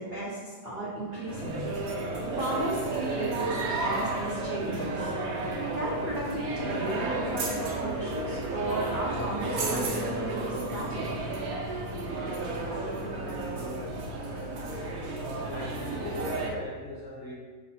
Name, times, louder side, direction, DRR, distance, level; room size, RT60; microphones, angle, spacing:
voice 1, 0.0-1.7 2.4-5.1 5.7-11.2, right 1 dB, 50° right, -8 dB, 0.6 m, -34 dB
sound 1, 1.0-16.6, left 4 dB, 75° left, 1.1 m, -44 dB
sound 2, 1.3-16.5, right 3 dB, 70° right, 1.1 m, -32 dB
voice 2, 15.0-17.3, left 2 dB, 55° left, -5 dB, 0.8 m, -41 dB
5.6 x 3.0 x 2.7 m, 1.4 s
omnidirectional pair, 1.7 m